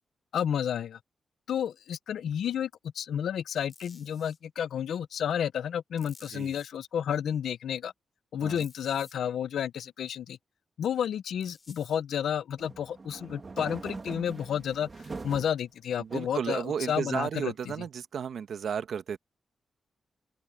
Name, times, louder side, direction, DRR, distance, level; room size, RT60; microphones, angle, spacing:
voice 1, 0.3-1.0 1.5-7.9 8.3-10.4 10.8-14.9 15.2-17.5, left 9 dB, 85° left, 0.6 m, -31 dB
sound 1, 3.7-4.4 6.0-6.7 8.6-9.1 11.4-12.0, left 4 dB, 35° left, 5.3 m, -54 dB
sound 2, 12.6-15.6 16.1-17.0, right 4 dB, 30° right, 1.7 m, -42 dB
voice 2, 16.0-19.2, right 7 dB, 65° right, 1.3 m, -33 dB
open air
wide cardioid pair, 140°, 0 cm